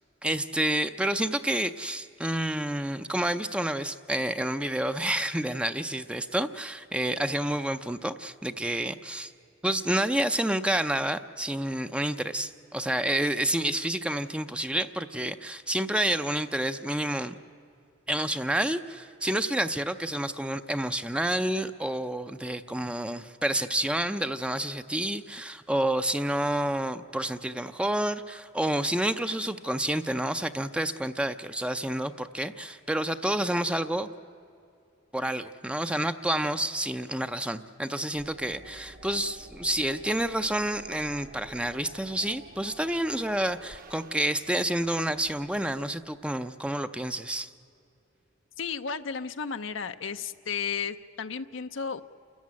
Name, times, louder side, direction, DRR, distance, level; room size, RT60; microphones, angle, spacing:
voice 1, 0.2-9.3 9.6-17.4 18.1-34.1 35.1-47.5, right 1 dB, 5° right, 10 dB, 0.5 m, -29 dB
sound 1, 38.1-46.3, right 2 dB, 45° right, 1.1 m, -51 dB
voice 2, 48.6-52.0, left 6 dB, 75° left, 9 dB, 0.7 m, -33 dB
28.5 x 13.5 x 9.6 m, 2.7 s
head